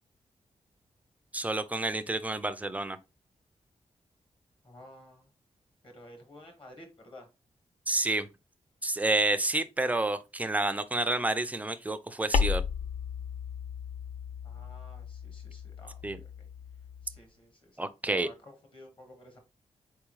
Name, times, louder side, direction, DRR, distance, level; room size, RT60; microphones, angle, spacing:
voice 1, 1.3-3.0 7.9-8.3 8.8-12.6 16.0-16.2 17.8-18.3, right 2 dB, 10° right, 0.3 m, -29 dB
voice 2, 4.6-5.3 5.8-7.3 14.4-16.5 17.0-19.4, left 1 dB, 45° left, 1.4 m, -52 dB
sound 1, 12.3-17.2, left 6 dB, 85° left, 0.5 m, -34 dB
4.2 x 3.5 x 3.1 m
wide cardioid pair, 155°, 12 cm